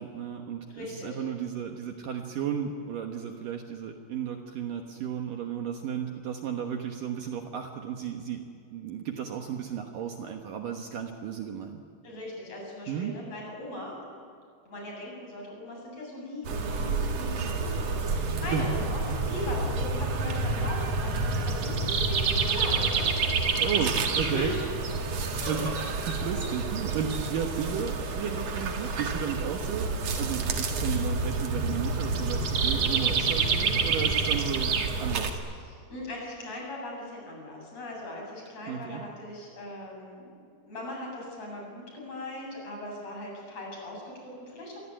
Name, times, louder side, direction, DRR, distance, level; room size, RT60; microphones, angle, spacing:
voice 1, 0.0-8.4 8.7-11.8 12.9-13.1 18.2-18.7 19.1-19.2 23.6-24.6 25.5-25.8 26.2-29.9 30.2-34.8 35.0-35.4 38.7-39.0, right 8 dB, 65° right, 4 dB, 2.6 m, -34 dB
voice 2, 0.7-1.2 12.0-14.0 14.7-23.1 24.3-24.5 25.4-25.5 35.3-40.3 40.6-44.8, left 1 dB, 40° left, -1 dB, 8.9 m, -39 dB
sound 1, 16.4-35.3, right 4 dB, 50° right, 2.5 m, -28 dB
27.0 x 23.0 x 9.0 m, 2.2 s
omnidirectional pair, 4.8 m